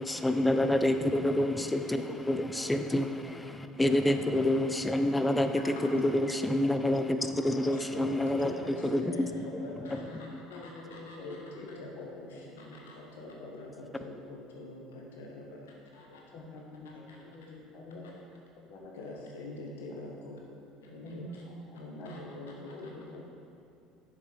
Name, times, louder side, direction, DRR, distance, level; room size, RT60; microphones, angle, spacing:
voice 1, 0.0-9.1, left 1 dB, 10° left, 8 dB, 0.5 m, -28 dB
voice 2, 5.6-6.0 7.5-16.6 16.8-17.2 17.5-17.6 18.9-20.4 20.8-21.5 21.7-23.1, left 2 dB, 80° left, -1 dB, 1.1 m, -45 dB
voice 3, 8.4-9.1 9.3-9.4 10.0-12.6 13.2-13.6 16.3-18.0 18.7-19.0 21.0-22.3 22.7-23.3, left 2 dB, 55° left, -1 dB, 1.5 m, -47 dB
7.3 x 6.5 x 4.7 m, 2.6 s
hypercardioid pair, 70°, 0 cm